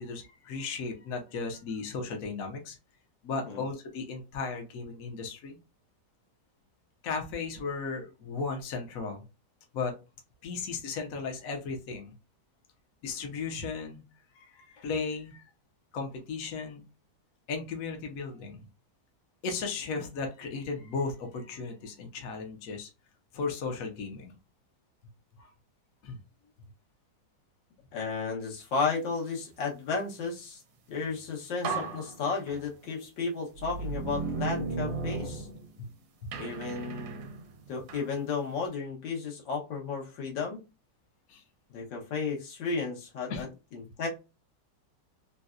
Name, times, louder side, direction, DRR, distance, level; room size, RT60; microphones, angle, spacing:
voice 1, 0.0-2.8 3.2-5.6 7.0-9.2 9.7-9.9 10.4-12.1 13.0-14.0 14.3-15.5 15.9-16.8 17.5-18.7 19.4-22.9 23.3-24.3 25.4-25.5 26.0-26.2 36.2-36.3 41.3-41.4 43.3-43.4, left 4 dB, 60° left, 2 dB, 1.0 m, -35 dB
voice 2, 27.9-30.6 30.9-35.5 36.4-37.3 37.7-40.6 41.7-44.1, left 4 dB, 80° left, -2 dB, 1.7 m, -33 dB
sound 1, 31.1-31.2 31.6-32.9 33.6-35.9 36.3-38.1, right 4 dB, 85° right, 1.4 m, -35 dB
4.0 x 2.2 x 2.4 m, 0.28 s
omnidirectional pair, 2.0 m